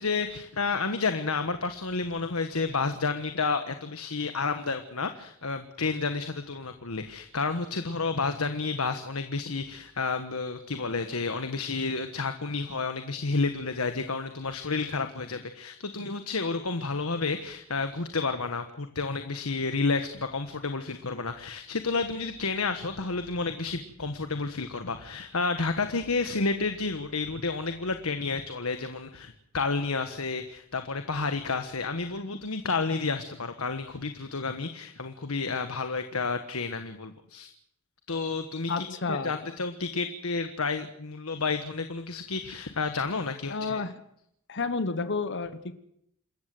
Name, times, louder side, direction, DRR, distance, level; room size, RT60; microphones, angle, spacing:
voice 1, 0.0-37.5 38.1-43.8, left 4 dB, 90° left, 8 dB, 1.4 m, -30 dB
voice 2, 38.7-39.3 43.5-43.9 44.5-45.7, left 4 dB, 60° left, 11 dB, 1.3 m, -30 dB
27.5 x 14.5 x 7.9 m, 0.73 s
head